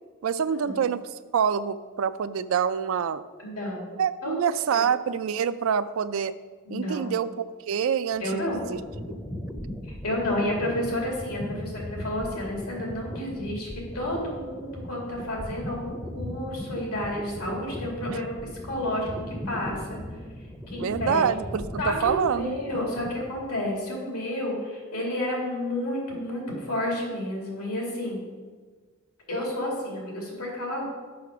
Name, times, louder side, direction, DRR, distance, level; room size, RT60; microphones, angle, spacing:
voice 1, 0.2-3.2 4.0-6.4 6.7-8.8 20.8-22.5, right 7 dB, 65° right, 14 dB, 0.3 m, -26 dB
voice 2, 3.4-3.9 4.2-4.8 6.7-7.1 8.2-8.6 9.9-13.7 13.9-18.4 18.6-20.0 20.7-21.3 21.8-28.2 29.3-30.9, left 1 dB, 90° left, -2 dB, 2.6 m, -31 dB
sound 1, 8.1-23.6, equal, 5° left, 0.5 m, -38 dB
6.4 x 5.9 x 5.8 m, 1.5 s
head